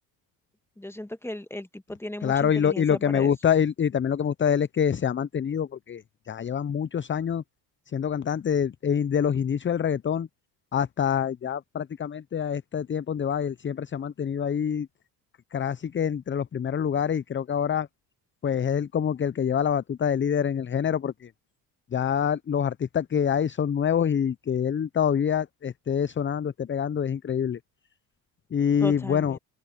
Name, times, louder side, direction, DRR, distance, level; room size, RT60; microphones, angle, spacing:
voice 1, 0.8-3.3 28.8-29.4, left 1 dB, 5° left, 1.8 m, -36 dB
voice 2, 2.2-6.0 6.3-7.4 7.9-10.3 10.7-14.9 15.5-17.9 18.4-21.3 21.9-27.6 28.5-29.4, left 8 dB, 25° left, 0.7 m, -26 dB
open air
hypercardioid pair, 65°, 46 cm